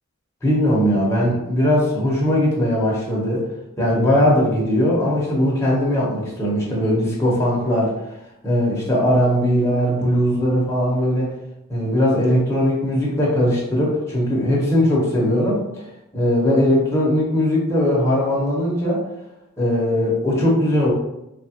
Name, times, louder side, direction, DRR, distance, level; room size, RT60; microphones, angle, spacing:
voice 1, 0.4-3.4 3.8-7.9 8.4-11.3 11.7-15.6 16.1-19.0 19.6-20.9, equal, 15° left, -5 dB, 0.8 m, -19 dB
3.1 x 2.3 x 2.8 m, 0.88 s
head